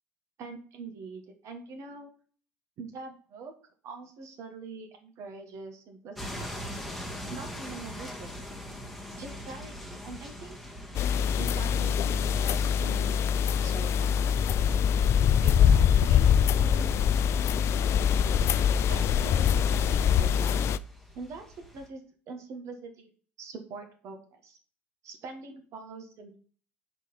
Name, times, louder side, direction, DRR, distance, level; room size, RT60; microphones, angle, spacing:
voice 1, 0.4-2.1 2.8-3.5 3.8-6.5 7.3-8.4 9.2-10.6 11.4-14.8 15.4-17.1 18.9-20.7 21.1-23.1 23.4-24.6 25.0-26.4, right 4 dB, 55° right, 5 dB, 1.4 m, -44 dB
sound 1, 6.1-21.9, left 1 dB, ahead, 1.4 m, -44 dB
sound 2, 10.9-20.8, left 8 dB, 45° left, 0.3 m, -24 dB
4.9 x 4.2 x 5.4 m, 0.43 s
hypercardioid pair, 70°, 6 cm